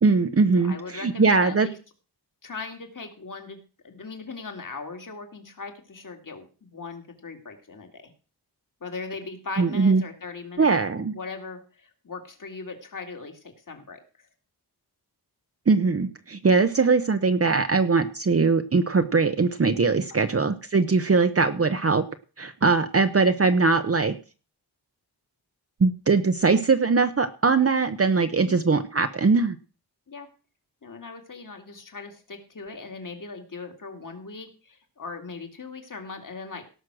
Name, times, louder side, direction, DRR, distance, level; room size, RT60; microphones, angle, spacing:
voice 1, 0.0-1.7 9.6-10.0 10.6-11.1 15.7-22.0 22.4-24.1 25.8-29.6, right 4 dB, 35° right, 8 dB, 0.8 m, -21 dB
voice 2, 0.6-1.8 2.4-3.6 3.8-8.1 8.8-10.7 11.1-14.0 20.1-20.2 28.5-28.6 30.1-30.3 30.8-36.6, left 4 dB, 50° left, 4 dB, 2.7 m, -39 dB
17.5 x 6.3 x 6.3 m, 0.36 s
wide cardioid pair, 120°, 40 cm